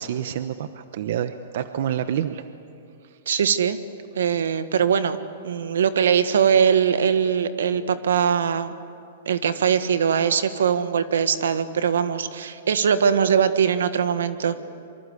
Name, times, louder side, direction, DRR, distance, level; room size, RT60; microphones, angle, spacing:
voice 1, 0.0-2.4 3.0-3.2 4.3-4.4, right 10 dB, 60° right, 10 dB, 1.0 m, -28 dB
voice 2, 3.3-3.8 4.1-5.2 5.4-8.7 9.2-14.5, right 7 dB, 85° right, 11 dB, 1.6 m, -21 dB
26.5 x 24.5 x 8.3 m, 2.5 s
hypercardioid pair, 150°, 0 cm